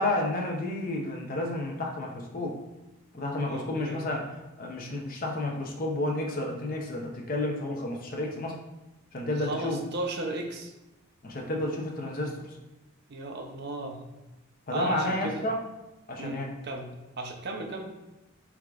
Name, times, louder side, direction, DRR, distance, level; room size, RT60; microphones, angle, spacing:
voice 1, 0.0-2.6 3.1-4.2 4.6-8.6 9.1-9.8 11.2-12.6 14.7-15.6 16.1-16.5, left 1 dB, 40° left, 1 dB, 0.6 m, -31 dB
voice 2, 3.4-4.1 9.4-10.7 13.1-14.0 14.7-15.4 16.2-16.9 17.2-17.9, right 2 dB, 50° right, 3 dB, 0.6 m, -35 dB
4.7 x 3.5 x 2.4 m, 1.0 s
head